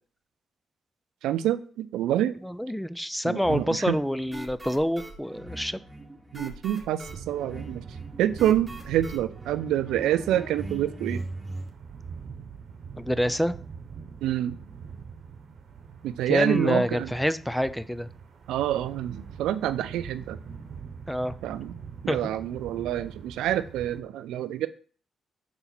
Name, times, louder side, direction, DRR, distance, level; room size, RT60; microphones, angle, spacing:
voice 1, 1.2-2.4 3.2-4.0 6.3-7.8 8.2-11.2 14.2-14.6 16.0-17.1 18.5-20.4 21.4-21.7 22.0-24.7, right 12 dB, 85° right, 13 dB, 0.3 m, -27 dB
voice 2, 2.4-5.8 13.0-13.5 16.3-18.1 21.1-21.4 22.1-22.2, equal, 5° left, 14 dB, 0.4 m, -27 dB
sound 1, 3.4-11.7, right 1 dB, 15° right, 1.4 m, -40 dB
sound 2, 7.1-24.0, right 6 dB, 70° right, 1.0 m, -43 dB
5.6 x 4.2 x 4.0 m, 0.43 s
supercardioid pair, 55°, 0 cm